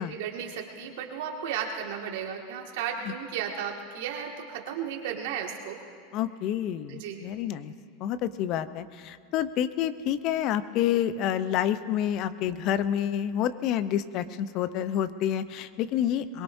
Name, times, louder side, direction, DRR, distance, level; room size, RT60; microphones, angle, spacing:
voice 1, 0.0-5.8 6.9-7.2, right 8 dB, 65° right, 1 dB, 2.1 m, -34 dB
voice 2, 6.1-7.7 8.0-16.4, left 10 dB, 50° left, 13 dB, 0.8 m, -28 dB
23.0 x 22.0 x 2.7 m, 2.2 s
hypercardioid pair, 90°, 0 cm